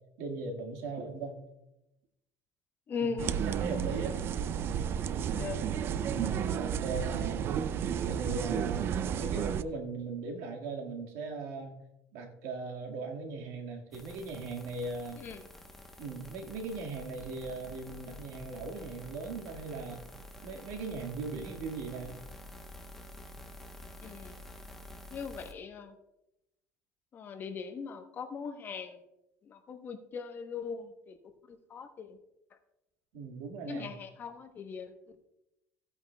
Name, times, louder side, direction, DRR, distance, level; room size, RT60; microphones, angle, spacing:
voice 1, 0.2-1.4 3.0-3.1 3.4-4.4 5.1-5.2 6.1-7.5 8.0-8.9 9.2-11.8 12.1-15.2 16.0-20.0 20.4-22.2 33.1-33.9, right 3 dB, 85° right, 1 dB, 1.8 m, -39 dB
voice 2, 2.9-3.4 5.3-5.6 15.2-15.5 24.0-24.4 25.1-25.9 27.1-29.0 29.4-31.2 31.5-32.2 33.7-35.2, left 5 dB, 35° left, 6 dB, 1.0 m, -40 dB
sound 1, 3.2-9.6, right 8 dB, 45° right, 0.4 m, -32 dB
sound 2, 13.9-25.5, left 1 dB, 5° left, 1.0 m, -49 dB
16.0 x 8.8 x 2.3 m, 0.90 s
cardioid pair, 135°, 6 cm